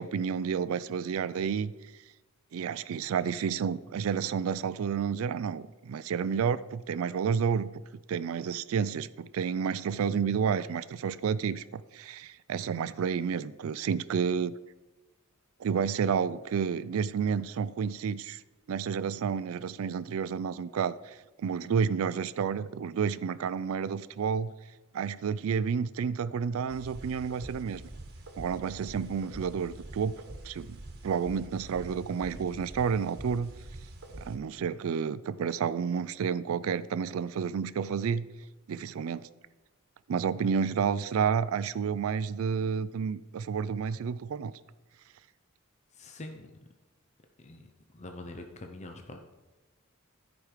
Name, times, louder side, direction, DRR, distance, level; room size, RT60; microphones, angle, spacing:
voice 1, 0.0-1.7 2.5-7.7 8.1-14.5 15.6-18.4 18.7-24.5 24.9-27.8 28.4-30.2 30.4-30.8 31.0-33.5 34.2-38.3 38.7-39.3 40.1-44.5, right 6 dB, 70° right, 0.4 m, -30 dB
sound 1, 26.7-34.4, right 1 dB, 50° right, 1.3 m, -45 dB
voice 2, 46.0-46.5 47.4-47.7 47.9-49.3, left 2 dB, 30° left, 0.6 m, -44 dB
13.0 x 5.1 x 4.9 m
head